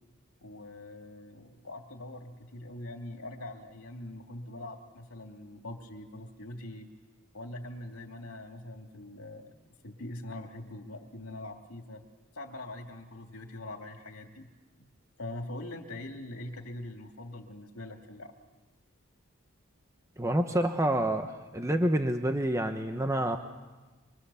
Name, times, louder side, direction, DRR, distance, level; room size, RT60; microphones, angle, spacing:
voice 1, 0.4-6.9 7.3-9.6 9.8-12.0 12.3-14.5 14.8-14.9 15.2-18.3, left 1 dB, 90° left, 4 dB, 2.7 m, -43 dB
voice 2, 20.2-23.4, right 1 dB, 15° right, 6 dB, 1.0 m, -28 dB
25.5 x 24.5 x 7.1 m, 1.2 s
head